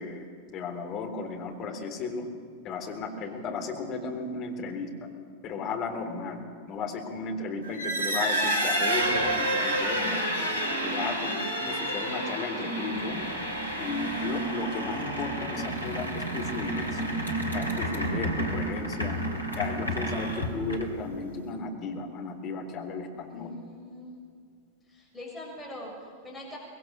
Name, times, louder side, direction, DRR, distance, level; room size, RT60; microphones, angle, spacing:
voice 1, 0.0-2.3 2.6-4.9 5.4-6.4 6.7-10.3 10.8-13.2 13.8-17.0 17.5-19.2 19.6-23.5, left 4 dB, 35° left, 2 dB, 3.7 m, -35 dB
voice 2, 2.9-3.3 18.7-19.4 23.3-24.2 24.9-26.6, left 1 dB, 5° left, -4 dB, 6.9 m, -44 dB
sound 1, 7.6-21.1, right 1 dB, 85° left, 3.0 m, -30 dB
25.0 x 20.5 x 6.7 m, 2.1 s
figure-of-eight pair, 90°, 0 cm